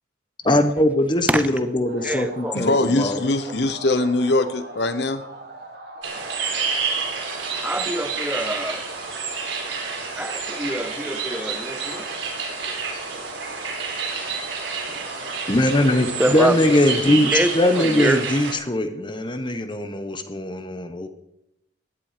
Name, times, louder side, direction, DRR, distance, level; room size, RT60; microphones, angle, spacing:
voice 1, 0.4-3.2 15.5-21.1, left 1 dB, 25° left, 9 dB, 1.2 m, -21 dB
sound 1, 1.8-8.0, right 2 dB, 60° right, 2.0 m, -41 dB
voice 2, 2.0-2.6 7.6-8.8 10.2-12.1 14.9-15.0 16.2-16.8 17.1-17.5 17.8-18.2, right 1 dB, 10° right, 11 dB, 0.8 m, -25 dB
voice 3, 2.5-5.2, left 2 dB, 60° left, 11 dB, 0.9 m, -22 dB
sound 2, 6.0-18.5, right 4 dB, 90° right, 3.9 m, -29 dB
16.0 x 11.0 x 5.1 m, 0.82 s
head